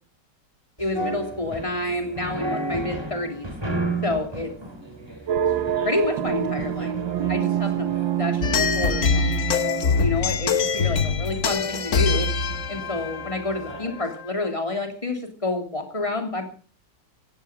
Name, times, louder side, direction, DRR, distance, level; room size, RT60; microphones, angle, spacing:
voice 1, 0.8-3.5 4.0-4.5 5.8-6.9 7.3-7.9 8.2-9.4 9.9-12.3 12.7-16.5, left 2 dB, 15° left, 4 dB, 3.2 m, -28 dB
sound 1, 0.8-14.1, right 2 dB, 15° right, 2.7 m, -35 dB
sound 2, 5.3-10.7, right 10 dB, 85° right, 1.9 m, -27 dB
sound 3, 8.4-14.2, left 5 dB, 45° left, 1.2 m, -24 dB
16.0 x 15.0 x 5.1 m, 0.39 s
omnidirectional pair, 2.0 m